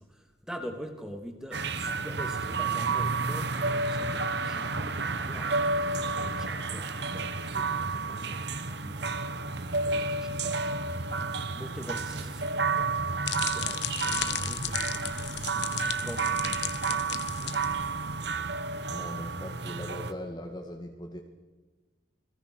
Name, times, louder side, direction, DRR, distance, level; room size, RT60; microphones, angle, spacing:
voice 1, 0.0-10.8 11.3-17.5, equal, 5° right, 4 dB, 2.8 m, -45 dB
sound 1, 1.5-20.1, right 4 dB, 60° right, 1.4 m, -31 dB
sound 2, 12.8-18.1, left 11 dB, 60° left, 1.5 m, -35 dB
voice 2, 18.9-21.2, equal, 20° left, 2 dB, 2.0 m, -39 dB
29.5 x 21.0 x 6.5 m, 1.3 s
head